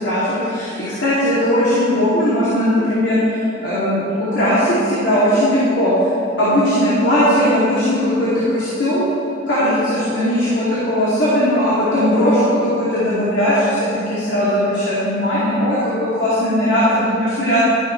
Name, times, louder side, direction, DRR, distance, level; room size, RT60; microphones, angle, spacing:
voice 1, 0.0-6.1 6.4-9.0 9.5-17.8, equal, 65° left, -10 dB, 2.7 m, -18 dB
13.0 x 10.5 x 3.3 m, 3.0 s
head